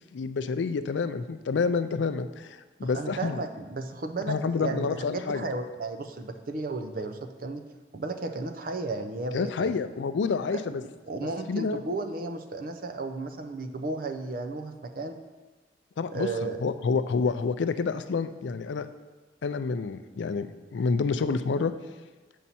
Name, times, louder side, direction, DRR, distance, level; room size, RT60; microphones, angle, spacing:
voice 1, 0.1-3.4 4.3-5.5 9.3-10.8 11.5-11.8 16.0-18.9 19.4-21.7, left 4 dB, 80° left, 12 dB, 0.4 m, -28 dB
voice 2, 2.8-7.6 7.9-9.7 11.1-15.2 16.1-16.6, right 3 dB, 50° right, 7 dB, 0.5 m, -34 dB
7.3 x 5.5 x 4.2 m, 1.3 s
head